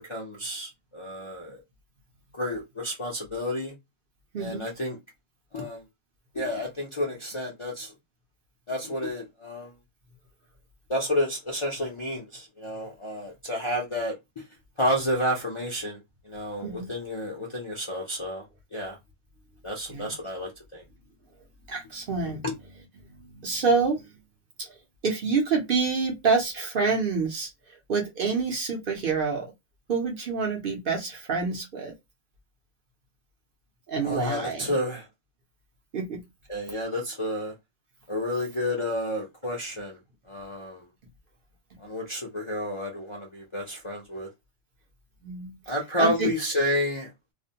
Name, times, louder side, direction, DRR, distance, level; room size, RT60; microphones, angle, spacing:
voice 1, 0.0-1.6 2.3-3.7 4.4-5.0 5.5-5.8 6.3-7.9 8.7-9.7 10.9-14.4 14.8-16.0 16.3-18.4 18.7-19.0 19.6-20.8 34.0-35.1 36.5-37.5 38.1-40.0 40.3-40.8 41.8-44.3 45.7-47.1, left 1 dB, 40° left, 0.4 m, -30 dB
voice 2, 4.3-4.7 16.6-16.9 19.9-20.1 21.7-22.4 23.0-23.1 23.3-24.0 24.6-24.8 25.0-29.5 29.9-31.9 33.9-34.7 35.9-36.2 45.2-46.3, right 4 dB, 55° right, 0.8 m, -27 dB
2.5 x 2.1 x 2.7 m
omnidirectional pair, 1.2 m